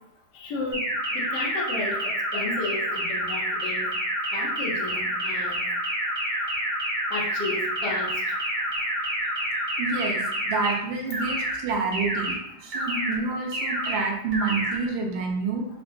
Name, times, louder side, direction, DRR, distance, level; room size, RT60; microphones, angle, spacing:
voice 1, 0.3-0.9 1.1-3.9 4.3-5.6 7.1-8.1 12.7-13.0, left 2 dB, 70° left, -3 dB, 1.4 m, -33 dB
sound 1, 0.7-10.7 11.1-11.5 11.9-12.3 12.7-13.1 13.5-13.9 14.3-14.7, right 1 dB, 65° right, 0.4 m, -28 dB
voice 2, 9.8-15.7, right 4 dB, 85° right, 1 dB, 1.4 m, -28 dB
3.7 x 2.1 x 2.6 m, 0.77 s
omnidirectional pair, 2.0 m